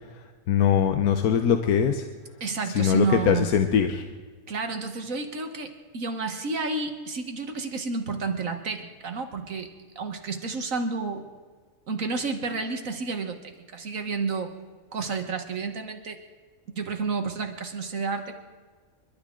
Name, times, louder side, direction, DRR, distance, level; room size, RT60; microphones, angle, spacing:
voice 1, 0.5-2.0 2.7-4.0, left 8 dB, 80° left, 7 dB, 1.3 m, -22 dB
voice 2, 2.4-3.6 4.5-11.3 11.9-14.6 14.9-16.2 16.8-18.3, right 4 dB, 65° right, 6 dB, 1.6 m, -30 dB
29.0 x 12.0 x 3.7 m, 1.5 s
omnidirectional pair, 1.5 m